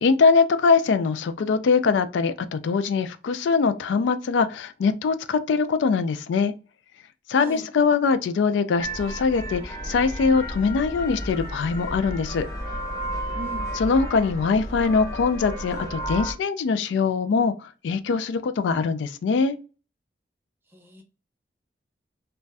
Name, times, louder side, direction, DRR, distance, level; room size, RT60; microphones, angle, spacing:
voice 1, 0.0-6.5 7.3-12.5 13.8-19.6, left 5 dB, 90° left, 0.3 m, -22 dB
sound 1, 8.8-16.3, equal, 20° left, 0.7 m, -32 dB
voice 2, 13.3-13.7 20.7-21.0, right 1 dB, 10° right, 0.4 m, -38 dB
2.5 x 2.2 x 3.3 m
head